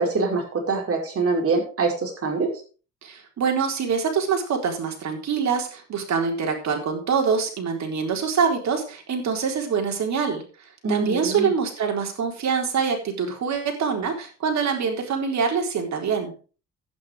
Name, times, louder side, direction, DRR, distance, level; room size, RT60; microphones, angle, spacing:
voice 1, 0.0-2.5 10.8-11.5, right 3 dB, 50° right, 1 dB, 5.4 m, -24 dB
voice 2, 3.0-10.4 10.9-16.3, right 6 dB, 65° right, 3 dB, 4.1 m, -25 dB
11.5 x 9.6 x 4.9 m, 0.37 s
cardioid pair, 90°, 30 cm